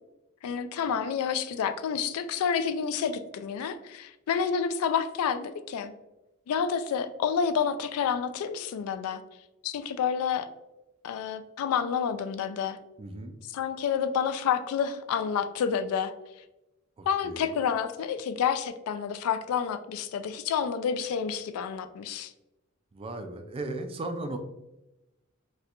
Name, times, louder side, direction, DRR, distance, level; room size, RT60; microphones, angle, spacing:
voice 1, 0.4-5.9 6.5-9.2 9.6-10.5 11.0-12.8 13.5-16.1 17.1-22.3, left 7 dB, 80° left, 11 dB, 0.3 m, -29 dB
voice 2, 13.0-13.3 17.0-17.5 22.9-24.4, right 2 dB, 25° right, 6 dB, 0.3 m, -36 dB
4.1 x 2.2 x 2.4 m, 0.97 s
head